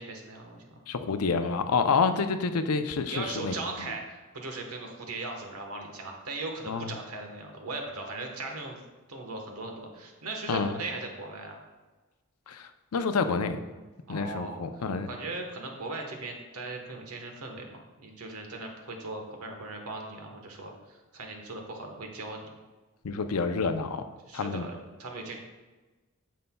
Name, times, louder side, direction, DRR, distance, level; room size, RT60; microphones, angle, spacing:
voice 1, 0.0-0.8 3.1-11.6 14.1-22.5 24.3-25.4, right 2 dB, 80° right, 2 dB, 1.2 m, -39 dB
voice 2, 0.9-3.5 6.7-6.9 10.5-10.8 12.5-13.6 14.1-15.1 23.0-24.7, left 4 dB, 85° left, 9 dB, 0.5 m, -28 dB
9.3 x 6.6 x 2.3 m, 1.2 s
head